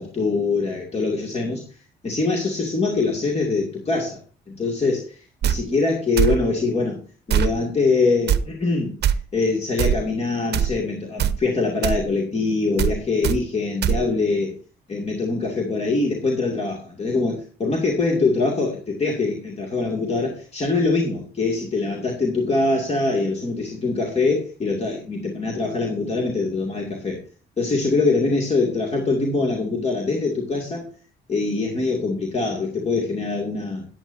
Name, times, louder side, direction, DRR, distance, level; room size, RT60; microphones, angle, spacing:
voice 1, 0.0-1.6 2.0-4.2 4.5-7.0 7.3-14.5 14.9-27.2 27.6-30.9 31.3-33.9, left 3 dB, 30° left, -1 dB, 2.4 m, -23 dB
sound 1, 5.4-5.6 6.2-6.4 7.3-7.5 8.3-8.4 9.0-9.1 9.8-10.0 10.5-10.7 11.2-11.4 11.8-12.0 12.8-13.0 13.2-13.4 13.8-14.0, right 9 dB, 60° right, 0.7 m, -20 dB
13.5 x 10.5 x 2.7 m, 0.38 s
cardioid pair, 90°, 20 cm